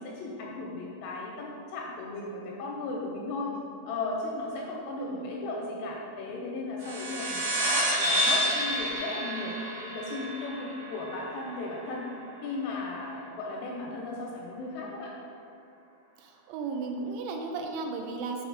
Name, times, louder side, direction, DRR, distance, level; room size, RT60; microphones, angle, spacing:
voice 1, 0.0-3.6 3.8-12.1 12.4-15.1, left 3 dB, 80° left, -2 dB, 2.5 m, -36 dB
voice 2, 5.0-5.4 16.2-18.5, right 4 dB, 85° right, 3 dB, 2.8 m, -35 dB
sound 1, 6.8-11.7, equal, 65° right, 3.2 m, -29 dB
7.0 x 4.9 x 3.9 m, 2.6 s
omnidirectional pair, 5.3 m